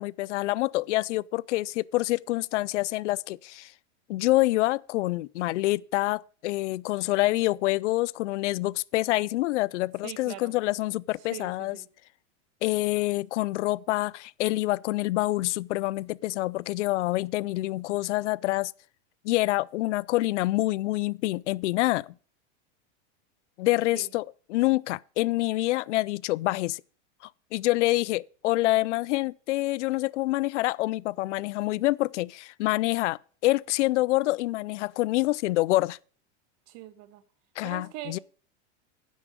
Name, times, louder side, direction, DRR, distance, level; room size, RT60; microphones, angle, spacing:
voice 1, 0.0-3.7 4.1-11.8 12.6-18.7 19.2-22.1 23.6-24.2 24.5-26.8 27.5-36.0 37.6-38.2, left 18 dB, 75° left, 0.5 m, -26 dB
voice 2, 10.0-10.5 11.2-11.9 23.9-24.1 36.7-37.2 37.6-38.2, right 12 dB, 50° right, 1.5 m, -42 dB
9.6 x 8.0 x 5.0 m
supercardioid pair, 130°, 35 cm